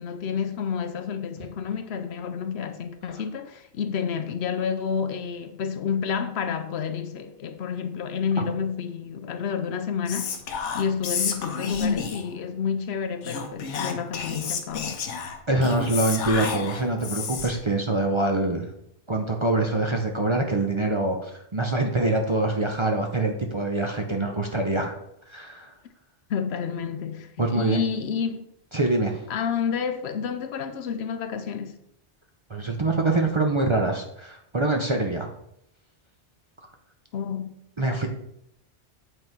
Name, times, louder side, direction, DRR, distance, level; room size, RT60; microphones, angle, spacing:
voice 1, 0.0-10.3 10.7-15.0 26.3-28.4 29.3-31.8 37.1-37.5, left 7 dB, 70° left, 0.8 m, -29 dB
Whispering, 10.1-12.4 13.2-17.6, left 6 dB, 90° left, 1.1 m, -30 dB
voice 2, 15.5-18.7 19.1-24.9 25.3-25.7 27.4-27.8 28.7-29.2 32.5-35.3 37.8-38.1, right 2 dB, 35° right, 0.6 m, -24 dB
7.9 x 4.0 x 4.5 m
omnidirectional pair, 1.2 m